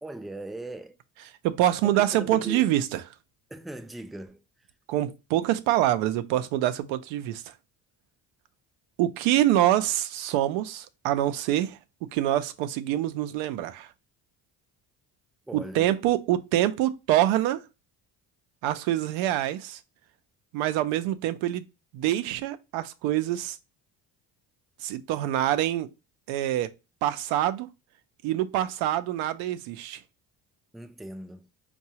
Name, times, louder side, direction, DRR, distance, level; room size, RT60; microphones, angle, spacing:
voice 1, 0.0-1.0 1.8-2.6 3.5-4.4 15.5-15.9 30.7-31.5, right 1 dB, ahead, 0.3 m, -39 dB
voice 2, 1.4-3.0 4.9-7.5 9.0-13.9 15.5-17.6 18.6-19.8 20.5-21.7 21.9-23.6 24.8-25.9 26.3-26.7 27.0-27.7 28.2-30.0, right 13 dB, 85° right, 0.6 m, -25 dB
4.6 x 2.3 x 2.8 m
supercardioid pair, 65°, 46 cm